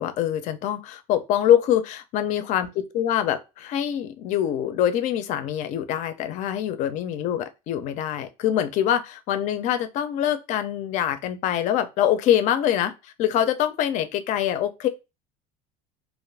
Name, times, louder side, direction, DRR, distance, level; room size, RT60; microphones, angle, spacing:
voice 1, 0.0-14.9, left 10 dB, 40° left, 0.4 m, -24 dB
2.5 x 2.4 x 3.3 m
cardioid pair, 175°, 19 cm